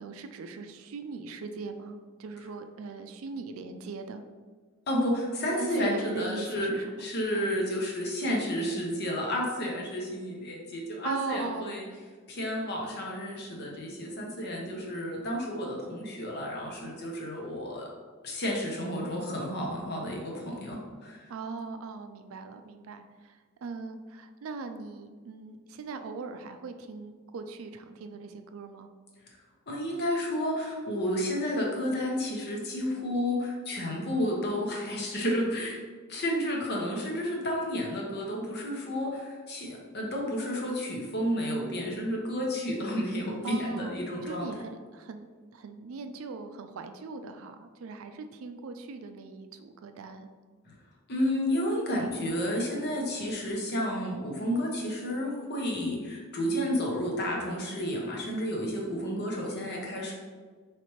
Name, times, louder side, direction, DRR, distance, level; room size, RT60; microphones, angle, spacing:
voice 1, 0.0-4.2 5.6-6.9 7.3-7.5 11.0-11.9 21.3-28.9 43.4-43.9 44.2-45.3 45.5-50.3, right 4 dB, 80° right, 8 dB, 0.4 m, -39 dB
voice 2, 4.9-6.7 7.0-11.8 12.3-17.9 18.2-21.3 29.7-35.8 36.1-44.5 50.7-50.8 51.1-60.1, equal, 55° left, -1 dB, 0.9 m, -31 dB
4.2 x 3.3 x 3.1 m, 1.5 s
head